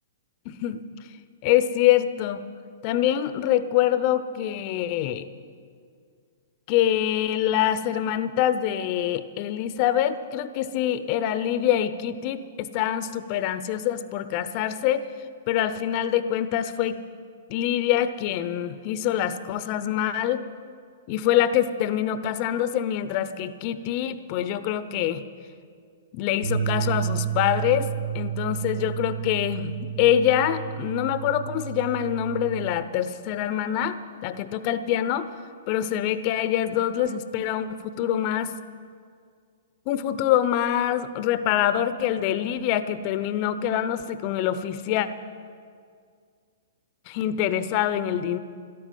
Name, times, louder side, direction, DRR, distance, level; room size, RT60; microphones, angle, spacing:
voice 1, 0.5-0.8 1.4-2.4 2.8-5.3 6.7-15.0 15.5-17.0 17.5-20.4 21.1-25.2 26.1-35.3 35.7-38.5 39.9-45.1 47.1-48.4, left 11 dB, 45° left, 13 dB, 0.8 m, -25 dB
sound 1, 26.4-32.7, right 9 dB, 85° right, 1.7 m, -31 dB
13.0 x 12.5 x 9.1 m, 2.2 s
hypercardioid pair, 120°, 0 cm